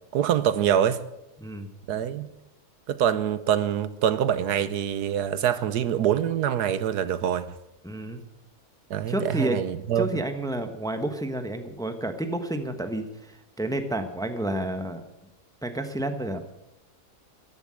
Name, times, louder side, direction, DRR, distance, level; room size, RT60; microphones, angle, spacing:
voice 1, 0.1-1.0 1.9-2.3 2.9-7.5 8.9-10.1, right 9 dB, 85° right, 1.4 m, -25 dB
voice 2, 1.4-1.7 7.8-8.2 9.1-9.6 9.9-15.0 15.6-16.4, right 1 dB, 5° left, 1.0 m, -30 dB
14.5 x 11.5 x 7.6 m
omnidirectional pair, 1.7 m